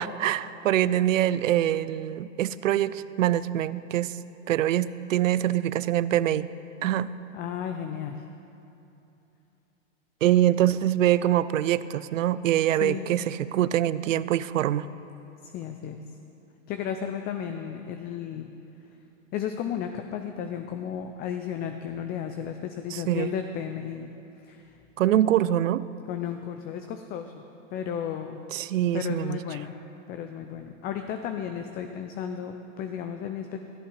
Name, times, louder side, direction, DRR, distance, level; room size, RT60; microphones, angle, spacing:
voice 1, 0.0-4.1 4.5-6.5 6.8-7.1 10.2-14.9 22.9-23.3 25.0-25.9 28.5-29.4, right 12 dB, 75° right, 17 dB, 0.5 m, -24 dB
voice 2, 7.3-8.2 12.8-13.1 15.4-16.0 16.7-18.5 19.3-24.1 24.4-24.8 26.1-27.3 27.7-28.4 28.9-29.8 30.1-33.6, left 8 dB, 25° left, 6 dB, 0.5 m, -34 dB
14.5 x 8.6 x 5.5 m, 2.8 s
hypercardioid pair, 105°, 39 cm